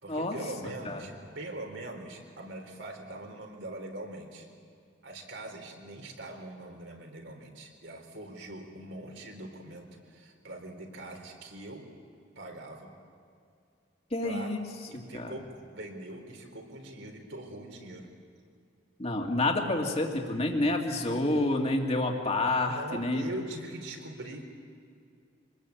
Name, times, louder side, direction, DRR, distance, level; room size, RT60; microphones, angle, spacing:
voice 1, 0.0-4.5 5.0-11.9 12.4-12.9 14.2-14.5 14.9-18.1 22.7-24.4, right 1 dB, 70° right, 2 dB, 4.0 m, -42 dB
voice 2, 14.1-14.7 15.1-15.3 19.0-23.2, left 2 dB, 35° left, 2 dB, 2.4 m, -28 dB
25.5 x 20.5 x 8.5 m, 2.4 s
head